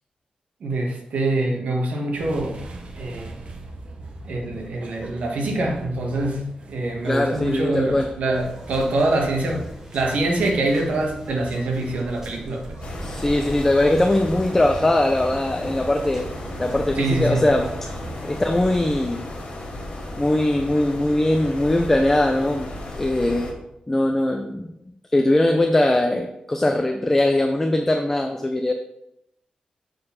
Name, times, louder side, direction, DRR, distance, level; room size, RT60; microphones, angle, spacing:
voice 1, 0.6-2.6 3.0-3.4 4.3-9.7 9.9-12.7 16.9-17.5, right 2 dB, 75° right, 1 dB, 1.5 m, -24 dB
sound 1, 2.1-18.3, right 2 dB, 50° right, 0.9 m, -40 dB
voice 2, 7.0-8.1 13.0-16.3 16.6-19.2 20.2-22.7 23.0-23.5 23.9-24.7 25.1-28.7, left 1 dB, 15° left, 4 dB, 0.4 m, -21 dB
sound 2, 8.3-18.8, right 1 dB, 20° right, 1.7 m, -43 dB
sound 3, 12.8-23.5, left 1 dB, 60° left, 1.8 m, -34 dB
6.6 x 4.4 x 5.7 m, 0.83 s
wide cardioid pair, 175°, 3 cm